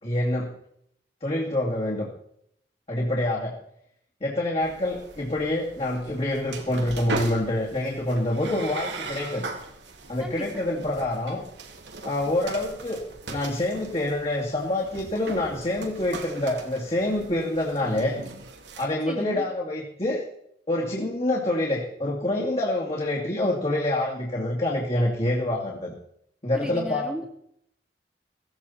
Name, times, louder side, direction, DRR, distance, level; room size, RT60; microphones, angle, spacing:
voice 1, 0.0-0.5 1.2-2.1 2.9-3.5 4.2-9.5 10.1-11.4 12.0-13.0 13.3-18.2 18.8-20.2 20.7-25.9 26.4-27.3, left 1 dB, 35° left, -3 dB, 2.6 m, -26 dB
sound 1, 4.6-18.8, right 3 dB, 80° right, 2.4 m, -39 dB
voice 2, 10.2-10.6 19.1-19.5 26.5-27.2, equal, 5° right, 2 dB, 1.3 m, -35 dB
17.0 x 15.5 x 4.3 m, 0.71 s
head